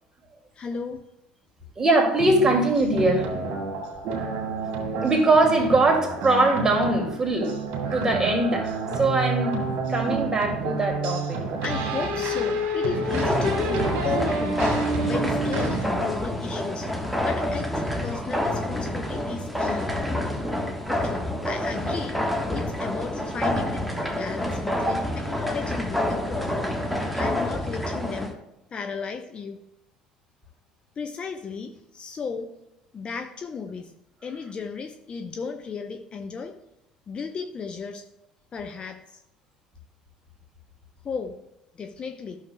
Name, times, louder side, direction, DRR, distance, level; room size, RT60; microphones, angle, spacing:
voice 1, 0.5-1.0 11.6-14.7 15.0-16.9 17.2-19.9 20.8-23.8 24.1-28.3 28.7-29.6 31.0-32.5 32.9-33.9 34.2-36.5 37.1-38.0 38.5-39.2 41.0-41.3 41.7-42.4, left 5 dB, 35° left, 5 dB, 0.7 m, -34 dB
voice 2, 1.8-3.3 5.0-7.6 7.9-11.4 24.9-25.0, right 2 dB, 20° right, 2 dB, 2.3 m, -22 dB
sound 1, 2.2-15.9, right 3 dB, 55° right, 2.0 m, -29 dB
sound 2, 13.0-28.3, left 1 dB, ahead, 1.3 m, -28 dB
13.0 x 6.6 x 2.3 m, 0.86 s
figure-of-eight pair, 60°, 3 cm